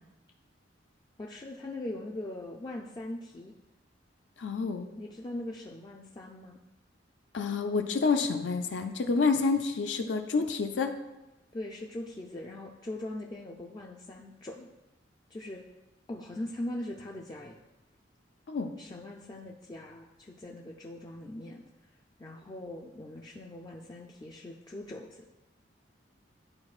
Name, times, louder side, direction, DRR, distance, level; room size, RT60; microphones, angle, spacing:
voice 1, 1.2-3.5 5.0-6.6 11.5-14.7 15.3-15.6 16.1-17.6 18.8-21.6 22.2-25.3, left 1 dB, 25° left, -1 dB, 0.4 m, -41 dB
voice 2, 4.4-4.9 7.3-11.0 18.5-18.7, left 4 dB, 85° left, 5 dB, 0.5 m, -28 dB
10.5 x 4.4 x 2.4 m, 1.0 s
head